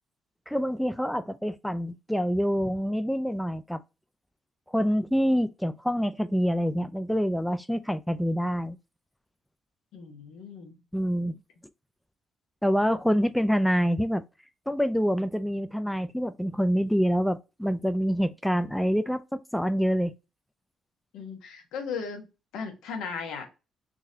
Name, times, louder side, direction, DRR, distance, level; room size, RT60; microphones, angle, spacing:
voice 1, 0.5-3.8 4.7-8.8 10.9-11.3 12.6-14.2 14.7-20.1, equal, ahead, 0.3 m, -26 dB
voice 2, 9.9-10.8 21.1-22.3 22.5-23.5, left 5 dB, 90° left, 1.1 m, -36 dB
3.9 x 2.6 x 2.7 m
cardioid pair, 90°, 0 cm